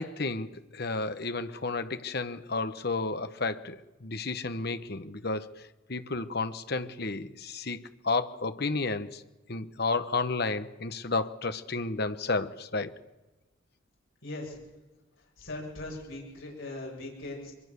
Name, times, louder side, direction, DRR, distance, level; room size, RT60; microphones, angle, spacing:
voice 1, 0.0-5.6 5.9-9.2 9.5-12.9, left 3 dB, 50° left, 11 dB, 1.1 m, -32 dB
voice 2, 14.2-14.6 15.4-17.5, left 2 dB, 70° left, -3 dB, 7.8 m, -39 dB
24.0 x 22.5 x 6.8 m, 1.1 s
head